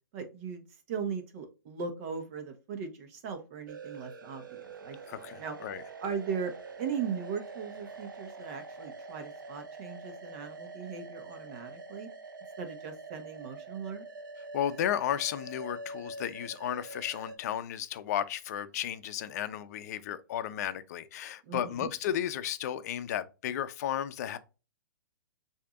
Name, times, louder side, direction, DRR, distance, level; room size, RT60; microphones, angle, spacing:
voice 1, 0.1-5.6 6.0-6.5 6.8-12.1 12.6-14.0 21.4-21.9, right 6 dB, 45° right, 1.3 m, -38 dB
sound 1, 3.7-17.4, right 3 dB, 70° right, 0.9 m, -45 dB
voice 2, 5.1-5.8 14.5-24.4, left 10 dB, 50° left, 0.6 m, -34 dB
6.6 x 2.8 x 2.5 m
hypercardioid pair, 125°, 11 cm